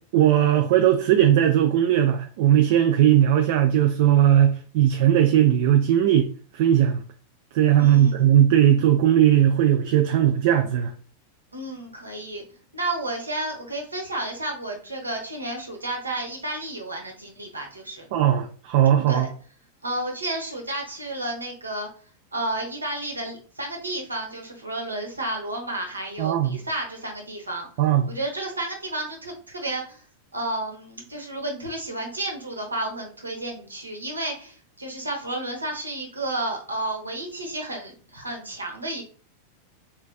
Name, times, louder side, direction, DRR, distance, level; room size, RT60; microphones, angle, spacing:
voice 1, 0.1-6.3 6.5-7.0 7.5-10.9 18.1-19.3 26.2-26.6 27.8-28.1, right 11 dB, 50° right, 0.3 m, -18 dB
voice 2, 7.8-8.3 11.5-12.4 12.7-18.1 19.1-19.3 19.8-21.9 22.3-27.7 28.1-30.0 30.3-39.0, right 2 dB, 80° right, 0.9 m, -31 dB
3.4 x 3.3 x 2.3 m
figure-of-eight pair, 90°, 0 cm